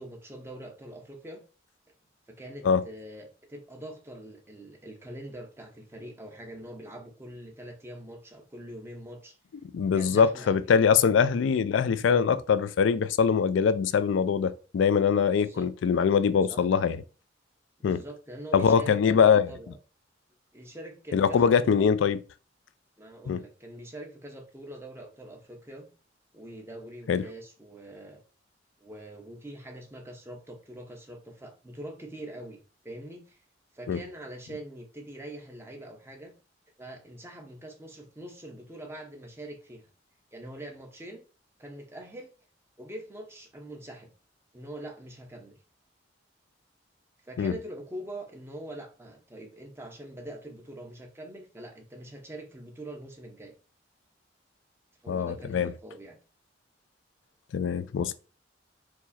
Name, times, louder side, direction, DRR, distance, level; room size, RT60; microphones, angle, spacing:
voice 1, 0.0-1.4 2.3-9.4 9.9-10.7 15.3-15.7 16.5-16.6 17.8-19.8 20.5-21.9 23.0-25.9 26.3-28.2 28.8-32.6 32.8-33.4 33.7-36.3 36.8-39.9 40.3-41.2 41.6-42.3 42.8-44.1 44.5-45.6 47.2-53.5 55.0-56.2, right 1 dB, 15° right, 0.8 m, -43 dB
voice 2, 9.7-17.0 17.8-18.0 18.5-19.5 21.1-22.2 23.3-23.4 27.1-27.2 33.9-34.0 47.4-47.5 55.1-55.7 57.5-58.1, left 6 dB, 85° left, 0.3 m, -23 dB
4.6 x 2.0 x 4.1 m
head